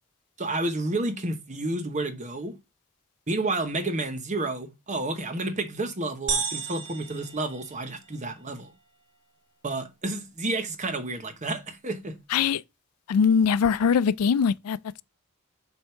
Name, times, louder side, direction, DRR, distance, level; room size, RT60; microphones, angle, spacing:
voice 1, 0.4-2.5 3.3-8.7 9.6-12.2, right 2 dB, 35° right, 1.0 m, -30 dB
sound 1, 6.3-8.2, right 5 dB, 55° right, 1.3 m, -32 dB
voice 2, 12.3-12.6 13.1-15.0, left 6 dB, 90° left, 0.4 m, -22 dB
7.7 x 2.7 x 5.6 m
head